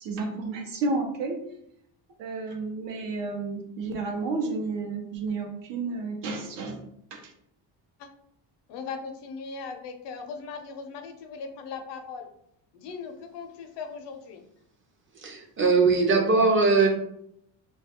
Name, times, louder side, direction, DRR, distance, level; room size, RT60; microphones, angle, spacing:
voice 1, 0.0-1.4 2.2-6.8 7.1-7.2, right 3 dB, 70° right, 3 dB, 0.7 m, -31 dB
voice 2, 8.7-12.3 12.7-14.4, left 5 dB, 70° left, 5 dB, 0.5 m, -39 dB
voice 3, 15.1-16.9, right 4 dB, 30° right, 1 dB, 0.5 m, -21 dB
2.3 x 2.3 x 2.8 m, 0.73 s
cardioid pair, 120°, 44 cm